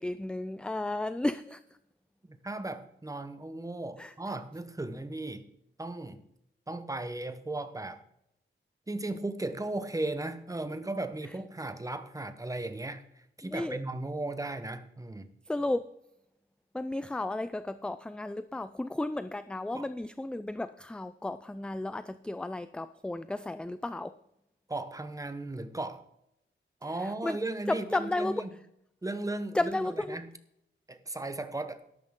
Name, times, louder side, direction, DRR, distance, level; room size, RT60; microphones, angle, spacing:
voice 1, 0.0-1.6 4.0-4.1 13.4-13.8 15.5-15.9 16.7-24.1 27.2-27.4 27.7-28.4 29.5-30.2, left 2 dB, 5° left, 12 dB, 0.3 m, -33 dB
voice 2, 2.3-5.4 5.8-6.2 6.7-8.0 8.9-15.3 19.7-19.9 24.7-26.0 26.8-28.5 29.0-30.3 30.9-31.9, right 2 dB, 15° right, 10 dB, 0.9 m, -36 dB
12.5 x 12.0 x 3.7 m, 0.78 s
wide cardioid pair, 165°, 21 cm